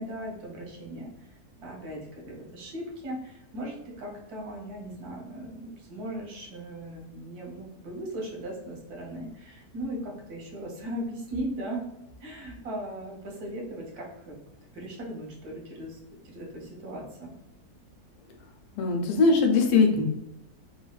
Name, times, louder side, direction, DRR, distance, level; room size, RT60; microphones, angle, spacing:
voice 1, 0.0-11.8 12.2-14.3 14.7-16.0 16.2-17.3, right 1 dB, 80° right, -1 dB, 1.4 m, -38 dB
voice 2, 18.7-20.0, left 4 dB, 85° left, 3 dB, 1.1 m, -21 dB
3.2 x 2.4 x 2.3 m, 0.92 s
omnidirectional pair, 1.6 m